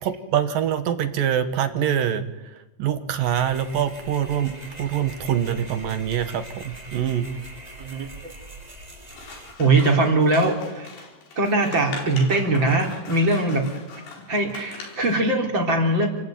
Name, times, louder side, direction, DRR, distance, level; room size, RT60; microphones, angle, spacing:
voice 1, 0.0-2.2 2.8-4.5 4.8-7.3, right 9 dB, 60° right, 9 dB, 2.8 m, -24 dB
sound 1, 3.2-9.5, right 1 dB, 10° right, 2.7 m, -42 dB
Scissors, 9.1-15.2, left 4 dB, 80° left, 6.9 m, -40 dB
voice 2, 9.6-10.9 11.4-13.7 14.3-16.1, right 2 dB, 30° right, 2 dB, 4.1 m, -21 dB
28.5 x 19.5 x 9.3 m, 1.0 s
omnidirectional pair, 4.9 m